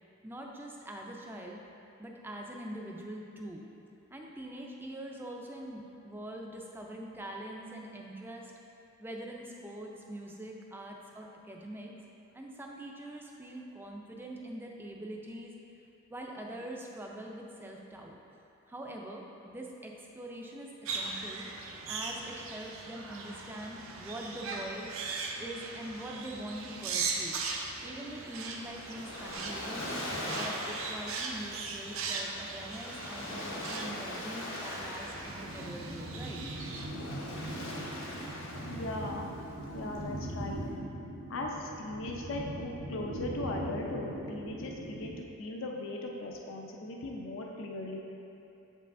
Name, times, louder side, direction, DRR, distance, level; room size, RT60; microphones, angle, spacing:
voice 1, 0.2-1.6 2.0-3.6 4.1-8.5 9.0-11.9 12.3-15.5 16.1-18.2 18.7-21.4 21.9-24.9 25.4-27.4 27.8-29.9 30.3-36.4, right 1 dB, 10° right, 0 dB, 0.4 m, -43 dB
sound 1, 20.9-36.9, right 4 dB, 70° right, 0.6 m, -39 dB
Waves surf, 28.3-40.7, left 1 dB, 80° left, 1.1 m, -42 dB
sound 2, 35.1-45.1, right 1 dB, 90° right, 1.1 m, -41 dB
voice 2, 38.7-39.3 39.7-40.6 41.3-48.0, left 2 dB, 65° left, 0 dB, 0.5 m, -38 dB
7.4 x 5.4 x 2.6 m, 2.9 s
head